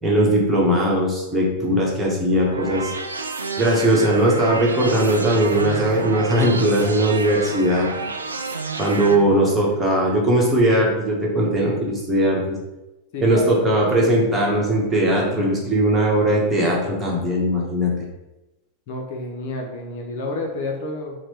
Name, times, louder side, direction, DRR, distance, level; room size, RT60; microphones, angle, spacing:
voice 1, 0.0-2.9 3.6-7.9 8.8-12.6 13.2-17.9, right 1 dB, 10° right, -4 dB, 1.2 m, -19 dB
sound 1, 2.3-9.1, right 3 dB, 75° right, 0.4 m, -30 dB
voice 2, 9.2-9.9 13.1-13.6 18.9-21.2, left 1 dB, 50° left, 1 dB, 0.7 m, -30 dB
4.6 x 2.2 x 4.4 m, 1.0 s
figure-of-eight pair, 90°, 0 cm